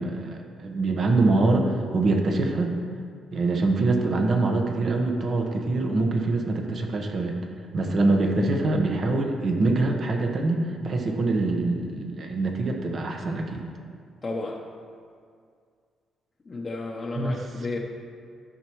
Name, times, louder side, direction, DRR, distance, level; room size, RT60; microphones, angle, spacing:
voice 1, 0.0-2.7 3.3-7.3 7.7-13.6 17.1-17.8, right 2 dB, 50° right, 3 dB, 1.1 m, -24 dB
voice 2, 14.2-14.6 16.5-17.8, left 3 dB, 30° left, -3 dB, 0.8 m, -32 dB
13.0 x 5.8 x 3.1 m, 2.2 s
cardioid pair, 90°, 0 cm